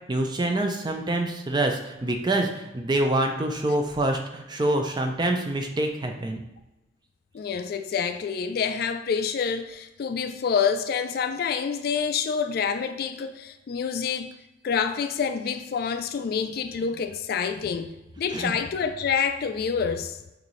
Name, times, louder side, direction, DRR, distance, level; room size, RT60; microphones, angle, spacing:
voice 1, 0.1-6.4 18.3-18.5, right 1 dB, 25° right, 0.4 m, -26 dB
voice 2, 7.3-14.4 14.6-20.2, left 6 dB, 55° left, 0.3 m, -27 dB
6.5 x 2.6 x 3.1 m
head